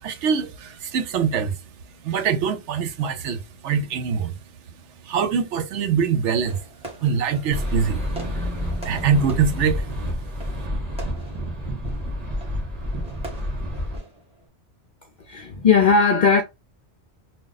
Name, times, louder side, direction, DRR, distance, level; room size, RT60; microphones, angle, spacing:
voice 1, 0.0-4.4 4.8-6.7 7.0-8.5 8.8-9.9, right 6 dB, 85° right, 1.0 m, -24 dB
Fireworks, 6.4-14.5, right 2 dB, 5° right, 1.4 m, -43 dB
sound 1, 7.5-14.0, equal, 35° right, 1.5 m, -29 dB
voice 2, 15.3-16.4, left 5 dB, 55° left, 0.5 m, -17 dB
3.6 x 2.3 x 4.0 m
omnidirectional pair, 1.2 m